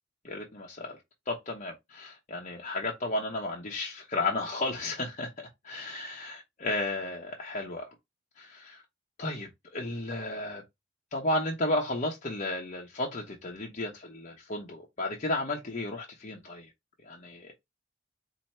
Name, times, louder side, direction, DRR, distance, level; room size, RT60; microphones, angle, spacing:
voice 1, 0.2-1.0 1.3-5.3 5.6-7.9 8.4-8.8 9.2-10.6 11.1-16.7 17.0-17.5, left 2 dB, 40° left, 0.9 m, -33 dB
4.4 x 2.8 x 4.2 m
head